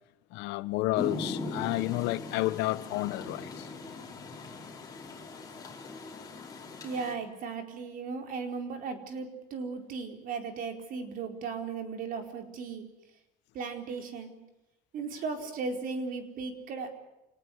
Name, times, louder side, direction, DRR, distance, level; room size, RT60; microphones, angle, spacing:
voice 1, 0.3-3.7, left 19 dB, 75° left, 1.0 m, -31 dB
Rain, 1.0-7.1, left 3 dB, 20° left, 4.8 m, -40 dB
voice 2, 6.8-12.9 13.5-14.3 14.9-17.0, right 4 dB, 50° right, 4.5 m, -36 dB
28.5 x 19.0 x 7.9 m
cardioid pair, 150°, 18 cm